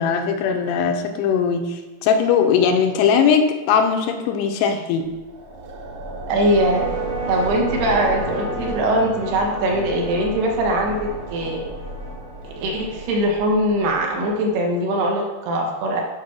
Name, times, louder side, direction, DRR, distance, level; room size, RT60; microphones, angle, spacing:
voice 1, 0.0-5.1, left 6 dB, 85° left, 5 dB, 2.9 m, -19 dB
sound 1, 5.0-14.4, right 1 dB, 60° right, 2.4 m, -35 dB
sound 2, 6.3-15.0, right 1 dB, 40° right, 1.4 m, -32 dB
voice 2, 6.3-6.9 7.3-11.7 12.4-16.0, right 1 dB, 75° right, 0 dB, 3.3 m, -21 dB
9.1 x 4.6 x 6.1 m, 1.2 s
omnidirectional pair, 4.8 m